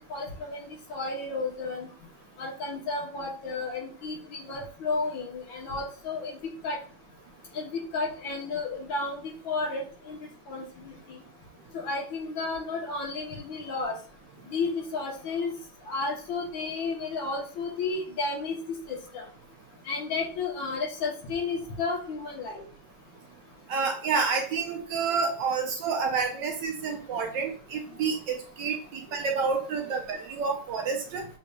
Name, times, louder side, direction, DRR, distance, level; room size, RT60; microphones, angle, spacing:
voice 1, 0.1-0.6 0.9-1.9 2.4-6.8 7.5-10.2 10.5-11.2 11.7-13.9 14.5-15.5 15.9-19.2 19.9-22.6, left 3 dB, 70° left, -1 dB, 1.8 m, -32 dB
voice 2, 23.7-31.2, right 5 dB, 70° right, 3 dB, 1.2 m, -29 dB
6.8 x 2.6 x 2.3 m, 0.42 s
omnidirectional pair, 2.3 m